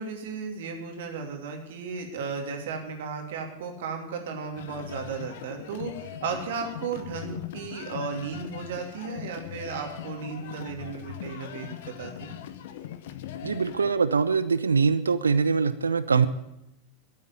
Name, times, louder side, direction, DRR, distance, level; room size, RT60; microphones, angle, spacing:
voice 1, 0.0-12.4, right 5 dB, 55° right, 3 dB, 2.8 m, -35 dB
sound 1, 4.6-13.9, left 11 dB, 55° left, 1.1 m, -40 dB
voice 2, 13.4-16.3, right 5 dB, 75° right, 14 dB, 0.7 m, -23 dB
13.0 x 8.4 x 9.5 m, 0.85 s
figure-of-eight pair, 90°, 0 cm